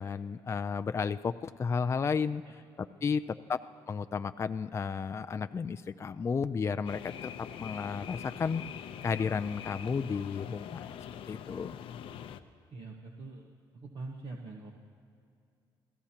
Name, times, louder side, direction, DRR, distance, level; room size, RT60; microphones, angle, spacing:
voice 1, 0.0-2.4 2.8-3.2 3.5-8.6 9.0-10.9 11.3-11.8, left 5 dB, 30° left, 10 dB, 0.4 m, -33 dB
sound 1, 6.8-12.4, left 9 dB, 70° left, 0.7 m, -43 dB
voice 2, 12.7-13.5 13.7-14.7, right 3 dB, 55° right, 0 dB, 1.4 m, -44 dB
29.0 x 16.0 x 2.9 m, 2.4 s
cardioid pair, 85°, 10 cm